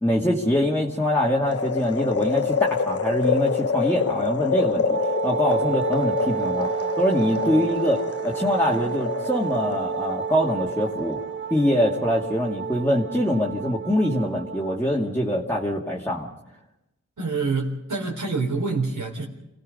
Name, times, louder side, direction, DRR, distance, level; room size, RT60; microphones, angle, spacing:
voice 1, 0.0-5.0 5.2-6.7 7.0-11.2 11.5-16.3, equal, 5° left, -5 dB, 2.2 m, -24 dB
sound 1, 1.5-11.7 12.1-12.2, left 5 dB, 50° left, 1.0 m, -27 dB
Wind instrument woodwind instrument, 4.8-14.8, right 8 dB, 40° right, 0.7 m, -31 dB
voice 2, 17.2-19.3, right 3 dB, 85° right, -3 dB, 3.9 m, -26 dB
28.5 x 18.0 x 5.4 m, 0.91 s
wide cardioid pair, 100°, 31 cm